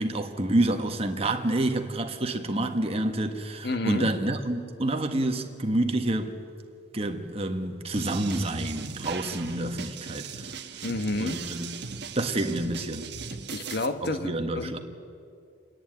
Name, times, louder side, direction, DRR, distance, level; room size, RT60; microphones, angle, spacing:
voice 1, 0.0-6.3 6.9-10.5 11.2-11.7 12.1-13.1 14.0-14.8, right 1 dB, 30° right, 1.4 m, -28 dB
voice 2, 3.6-4.1 10.8-11.4 13.5-14.8, left 2 dB, 60° left, 1.1 m, -30 dB
sound 1, 7.9-13.8, right 5 dB, 60° right, 1.3 m, -39 dB
28.0 x 10.5 x 9.2 m
head